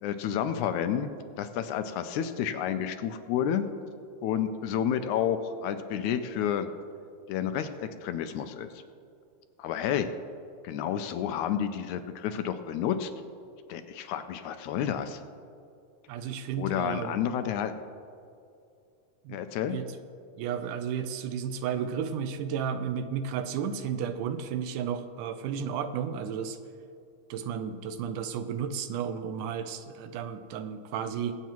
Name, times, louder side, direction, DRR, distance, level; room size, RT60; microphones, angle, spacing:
voice 1, 0.0-1.1 1.4-3.7 4.2-6.7 7.3-8.8 9.6-10.1 10.6-13.1 13.7-15.2 16.6-17.8 19.3-19.8, left 9 dB, 80° left, 9 dB, 1.9 m, -30 dB
voice 2, 16.1-17.2 19.3-19.4 19.7-19.9 20.4-26.6 27.3-31.4, right 7 dB, 85° right, 9 dB, 2.2 m, -33 dB
22.5 x 8.2 x 3.0 m, 2.4 s
omnidirectional pair, 3.6 m